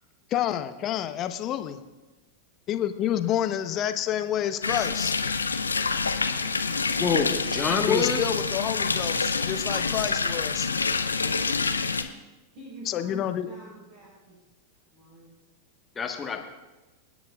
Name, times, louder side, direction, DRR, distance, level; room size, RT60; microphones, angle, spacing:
voice 1, 0.3-1.8 2.7-5.1 7.9-10.7 12.9-13.5, left 10 dB, 35° left, 9 dB, 0.9 m, -28 dB
sound 1, 4.6-12.0, left 4 dB, 75° left, 0.8 m, -27 dB
voice 2, 7.0-8.3 15.9-16.4, left 5 dB, 20° left, 3 dB, 1.4 m, -26 dB
voice 3, 12.5-14.4 14.9-15.3, right 2 dB, 50° right, -5 dB, 5.3 m, -47 dB
28.0 x 9.5 x 2.5 m, 1.1 s
figure-of-eight pair, 90°, 0 cm